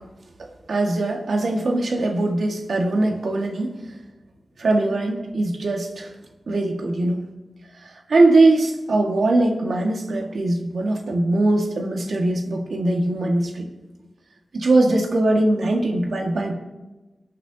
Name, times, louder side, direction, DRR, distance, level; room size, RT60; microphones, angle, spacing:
voice 1, 0.7-3.7 4.6-6.1 6.5-7.2 7.8-13.7 14.5-16.5, right 2 dB, 80° right, 1 dB, 2.0 m, -21 dB
23.0 x 9.0 x 3.0 m, 1.1 s
cardioid pair, 55°, 0 cm